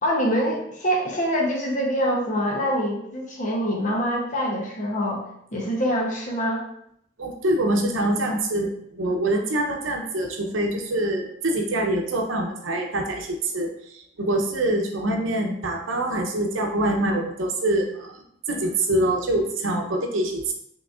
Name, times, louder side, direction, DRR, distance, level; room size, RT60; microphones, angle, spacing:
voice 1, 0.0-5.2 5.5-6.6, equal, 40° left, 0 dB, 0.8 m, -25 dB
voice 2, 7.2-13.7 14.2-18.1 18.5-20.5, right 1 dB, 85° right, 3 dB, 0.7 m, -25 dB
5.1 x 3.1 x 2.4 m, 0.73 s
head